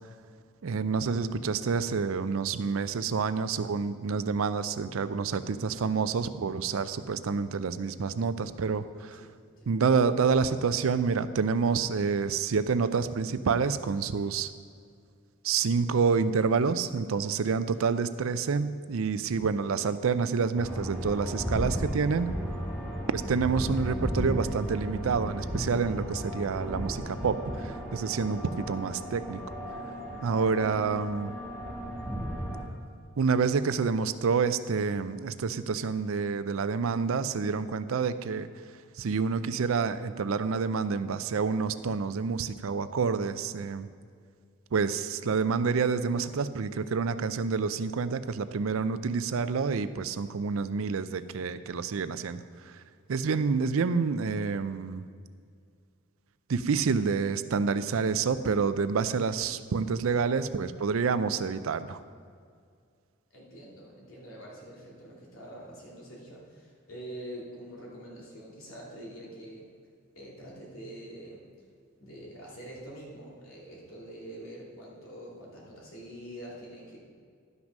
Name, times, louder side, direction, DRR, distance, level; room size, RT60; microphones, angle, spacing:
voice 1, 0.6-9.3 9.7-14.5 15.4-22.3 23.1-29.4 30.2-31.4 33.2-38.5 39.0-43.9 44.7-52.8 53.1-55.0 56.5-62.0, right 5 dB, 85° right, 13 dB, 0.5 m, -28 dB
voice 2, 9.1-9.7 63.3-69.7 70.1-71.4 72.0-77.0, right 1 dB, 80° left, -4 dB, 2.7 m, -45 dB
sound 1, 20.5-32.6, equal, 5° left, 2.9 m, -35 dB
11.5 x 6.1 x 5.3 m, 2.2 s
head